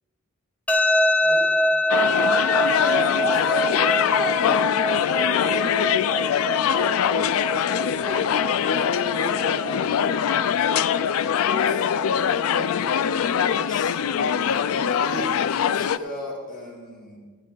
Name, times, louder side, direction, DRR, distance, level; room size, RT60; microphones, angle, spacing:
sound 1, 0.7-13.7, left 1 dB, 5° left, 0.5 m, -26 dB
voice 1, 1.2-1.5 2.8-6.0 7.8-8.3 8.8-10.0 11.3-17.2, left 2 dB, 40° left, -4 dB, 2.4 m, -37 dB
sound 2, 1.9-16.0, left 8 dB, 65° left, 0.3 m, -23 dB
15.5 x 9.3 x 4.0 m, 1.5 s
head